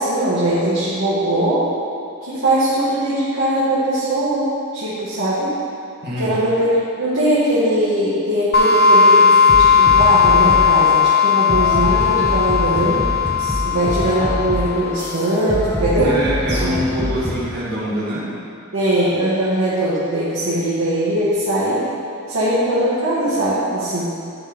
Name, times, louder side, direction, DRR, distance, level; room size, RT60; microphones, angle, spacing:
voice 1, 0.0-1.7 2.2-5.5 6.2-13.1 13.6-16.2 16.5-16.7 17.0-17.2 18.7-21.9 22.3-24.1, right 1 dB, 85° right, -9 dB, 1.4 m, -20 dB
voice 2, 6.0-6.4 13.4-13.6 16.0-18.3, equal, 50° right, -6 dB, 1.7 m, -24 dB
sound 1, 8.5-15.0, left 5 dB, 50° left, 0.7 m, -15 dB
sound 2, 9.5-10.8 11.5-17.5, left 1 dB, 10° left, 0.7 m, -25 dB
9.6 x 3.4 x 5.2 m, 2.6 s
head